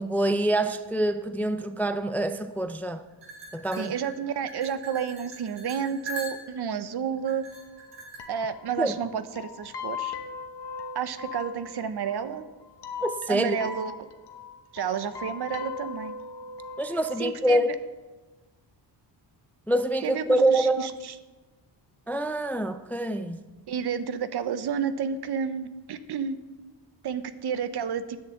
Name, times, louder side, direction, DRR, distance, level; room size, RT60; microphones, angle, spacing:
voice 1, 0.0-3.0 3.5-3.9 8.8-9.0 13.0-13.6 16.8-17.7 19.7-20.9 22.1-23.5, right 1 dB, 5° left, 0.3 m, -26 dB
sound 1, 3.2-6.7 7.3-8.2, right 1 dB, 90° right, 3.2 m, -41 dB
voice 2, 3.8-7.4 8.3-10.2 10.9-12.4 13.3-14.1 14.7-16.1 17.2-17.6 20.0-21.1 23.7-26.4 27.0-28.2, right 7 dB, 65° right, 0.8 m, -31 dB
sound 2, 7.2-7.3 7.6-7.7 7.9-8.0 8.2-17.3, left 5 dB, 65° left, 1.2 m, -39 dB
10.0 x 6.9 x 7.6 m
wide cardioid pair, 140°, 43 cm